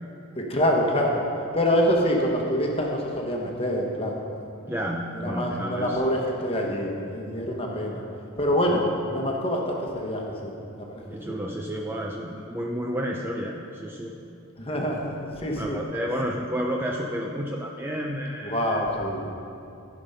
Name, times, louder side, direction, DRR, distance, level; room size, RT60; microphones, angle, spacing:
voice 1, 0.3-1.2 1.5-4.1 5.2-8.0 8.4-11.3 14.6-15.8 18.4-19.3, equal, 25° left, 0 dB, 1.2 m, -26 dB
voice 2, 4.7-6.0 8.7-8.8 11.1-14.1 15.6-18.8, equal, 10° right, -1 dB, 0.4 m, -31 dB
14.0 x 5.3 x 5.6 m, 2.7 s
head